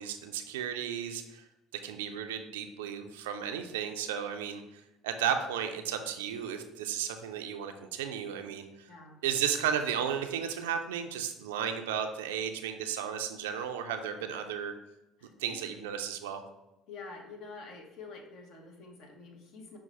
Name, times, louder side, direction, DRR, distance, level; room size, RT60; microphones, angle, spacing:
voice 1, 0.0-1.4 1.8-8.7 9.2-14.7 15.4-16.4, right 8 dB, 75° right, 6 dB, 0.3 m, -34 dB
voice 2, 8.9-9.2 14.5-14.6 15.2-15.6 16.9-19.8, left 4 dB, 60° left, 2 dB, 0.9 m, -47 dB
5.6 x 2.2 x 4.1 m, 0.95 s
figure-of-eight pair, 60°, 0 cm